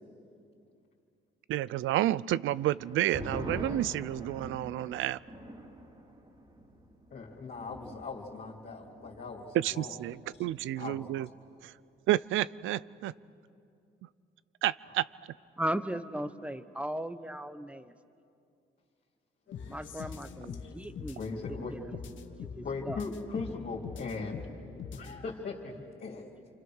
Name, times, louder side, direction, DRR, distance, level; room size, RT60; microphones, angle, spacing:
voice 1, 1.5-5.2 9.5-11.3 11.6-11.7 12.1-13.1 14.6-15.1, right 14 dB, 80° right, 19 dB, 0.5 m, -30 dB
sound 1, 2.5-9.5 9.8-9.9 10.2-10.7, equal, 25° right, 3.3 m, -44 dB
voice 2, 7.1-10.0 10.8-11.1 20.6-20.7 21.2-21.8 22.6-24.5 24.9-26.3, left 4 dB, 50° left, -3 dB, 3.3 m, -39 dB
voice 3, 15.6-17.9 19.7-21.2 21.7-21.8 22.2-22.3 22.6-23.0, right 1 dB, 5° right, 12 dB, 1.1 m, -36 dB
sound 2, 19.5-25.2, left 6 dB, 75° left, 1.6 m, -44 dB
28.5 x 25.5 x 6.4 m, 2.5 s
cardioid pair, 90°, 20 cm